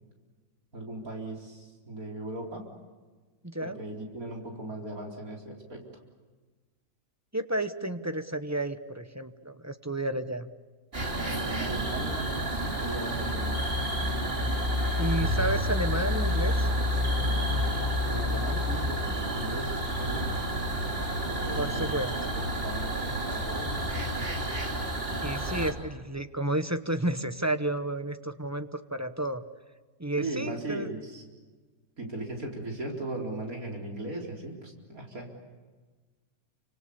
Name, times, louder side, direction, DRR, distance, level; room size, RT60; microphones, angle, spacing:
voice 1, 0.7-2.7 3.6-5.9 11.2-12.3 12.8-13.5 18.0-20.7 21.3-24.3 30.2-31.2 32.0-35.3, right 2 dB, 70° right, 0 dB, 4.7 m, -38 dB
voice 2, 3.4-3.8 7.3-10.5 15.0-16.7 21.6-22.1 25.2-29.4 30.0-30.9, right 1 dB, 15° right, 9 dB, 0.9 m, -31 dB
sound 1, 10.9-25.7, equal, 40° right, 3.3 m, -29 dB
29.0 x 26.0 x 7.0 m, 1.4 s
omnidirectional pair, 1.6 m